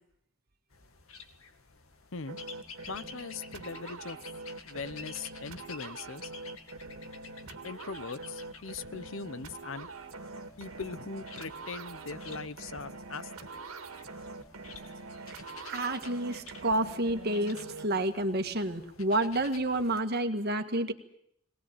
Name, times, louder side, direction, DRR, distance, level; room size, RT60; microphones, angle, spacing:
sound 1, 0.7-20.0, left 5 dB, 85° left, 2.3 m, -51 dB
sound 2, 2.3-17.9, right 3 dB, 85° right, 1.9 m, -44 dB
voice 1, 2.9-4.2 4.6-6.3 7.6-9.9 10.6-13.3, left 4 dB, 65° left, 15 dB, 0.8 m, -40 dB
voice 2, 15.7-20.9, right 1 dB, 50° right, 7 dB, 1.8 m, -29 dB
22.0 x 19.0 x 9.0 m, 0.71 s
head